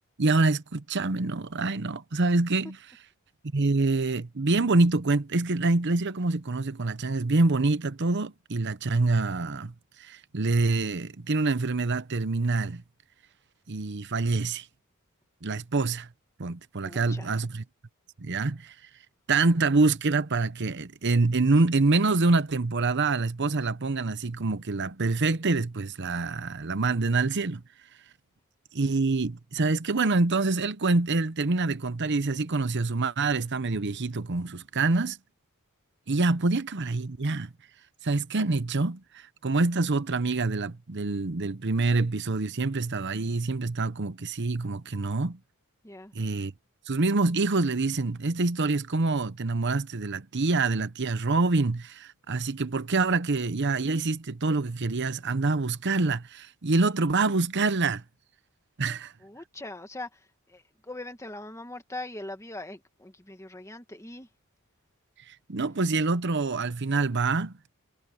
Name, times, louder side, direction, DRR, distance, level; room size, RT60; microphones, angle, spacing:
voice 1, 0.2-2.8 3.5-12.8 13.7-14.7 15.4-16.1 16.4-17.6 18.2-18.7 19.3-27.6 28.7-35.2 36.1-37.5 38.0-45.4 46.1-46.5 46.9-58.0 58.8-59.1 65.3-67.6, right 3 dB, 50° right, 0.9 m, -26 dB
voice 2, 16.8-17.3 45.8-46.1 59.2-64.3, left 2 dB, 15° left, 1.7 m, -41 dB
head